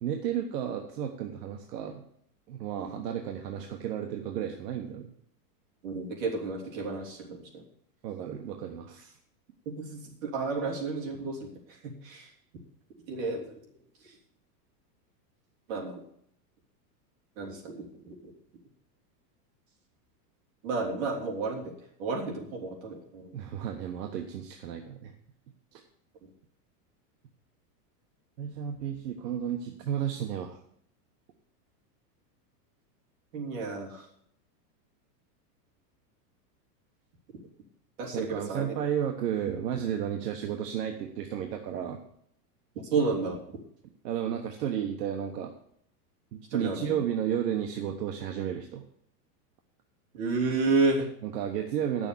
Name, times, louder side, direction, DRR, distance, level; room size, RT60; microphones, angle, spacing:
voice 1, 0.0-2.0 2.5-5.1 8.0-9.2 23.3-25.1 25.7-25.8 28.4-30.6 38.1-42.0 44.0-45.5 46.3-48.8 51.2-52.1, right 9 dB, 75° right, 4 dB, 1.3 m, -33 dB
voice 2, 5.8-7.6 9.6-11.5 12.0-12.3 13.1-13.4 15.7-16.0 17.4-18.1 20.6-21.7 22.0-23.3 33.3-34.0 38.0-38.7 42.9-43.4 46.5-46.9 50.1-51.1, right 3 dB, 55° right, -2 dB, 3.3 m, -31 dB
9.6 x 6.9 x 6.8 m, 0.69 s
supercardioid pair, 175°, 49 cm